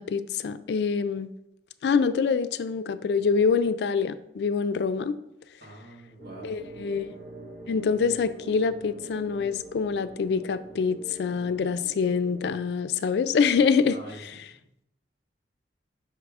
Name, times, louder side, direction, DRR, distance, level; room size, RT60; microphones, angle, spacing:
voice 1, 0.0-1.3 1.8-5.2 6.4-7.2 7.7-14.0, left 5 dB, 70° left, 13 dB, 0.3 m, -25 dB
voice 2, 5.6-6.6 13.9-14.8, right 1 dB, 60° right, -2 dB, 1.5 m, -46 dB
sound 1, 6.2-12.6, right 2 dB, 40° right, 1.4 m, -44 dB
5.8 x 3.5 x 4.8 m, 0.82 s
head